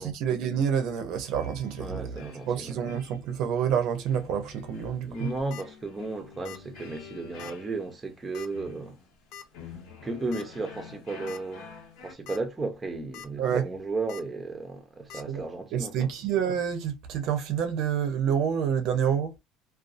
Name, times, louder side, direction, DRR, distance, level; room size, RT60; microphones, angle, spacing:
voice 1, 0.0-5.3 13.4-13.6 15.3-15.4 15.7-19.3, right 8 dB, 60° right, 0.6 m, -28 dB
sound 1, 1.3-12.1, left 6 dB, 75° left, 1.1 m, -48 dB
voice 2, 1.8-2.8 5.1-9.0 10.0-11.7 12.0-16.1, right 3 dB, 15° right, 0.6 m, -34 dB
sound 2, 5.2-5.6 6.4-6.7 7.0-7.1 7.4-7.5 8.3-8.6 9.3-9.4 10.3-10.5 10.9-11.0 11.3-11.4 12.1-12.4 12.8-13.3 14.1-14.2 15.1-15.2, left 8 dB, 55° left, 0.4 m, -44 dB
2.5 x 2.3 x 2.4 m
cardioid pair, 145°, 0 cm